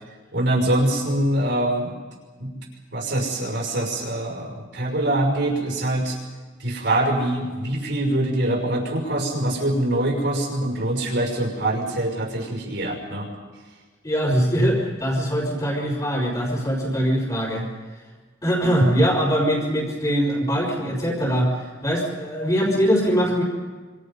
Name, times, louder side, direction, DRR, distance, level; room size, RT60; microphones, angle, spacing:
voice 1, 0.3-1.9 2.4-2.6 2.9-6.2 6.6-13.3, right 1 dB, 65° right, 1 dB, 6.0 m, -24 dB
voice 2, 14.0-17.7 18.4-23.4, equal, 25° left, -6 dB, 4.7 m, -22 dB
26.5 x 26.0 x 5.4 m, 1.4 s
head